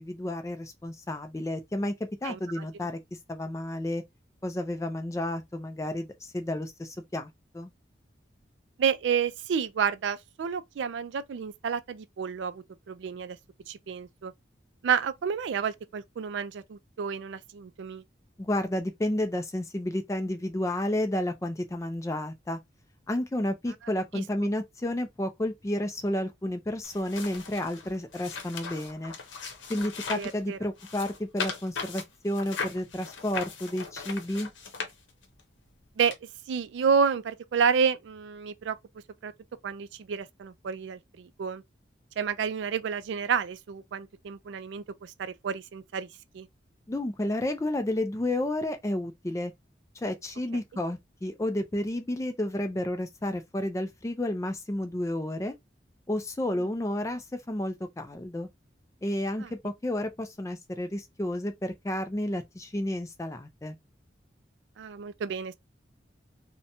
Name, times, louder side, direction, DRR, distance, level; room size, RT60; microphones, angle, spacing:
voice 1, 0.0-3.0 3.3-4.0 4.4-7.7 18.4-22.6 23.1-29.1 29.7-34.5 46.9-49.5 50.0-55.5 56.1-58.5 59.0-63.8, left 1 dB, 15° left, 0.3 m, -31 dB
voice 2, 2.2-2.6 8.8-13.4 13.7-14.3 14.8-18.0 24.4-24.5 30.1-30.6 36.0-36.1 36.5-38.8 39.2-39.3 39.6-41.6 42.2-46.1 46.3-46.5 59.4-59.5 64.8-65.6, right 6 dB, 75° right, 0.3 m, -30 dB
sound 1, 26.8-30.4 30.8-35.4 36.1-36.2, left 5 dB, 90° left, 0.7 m, -38 dB
2.7 x 2.1 x 2.6 m
head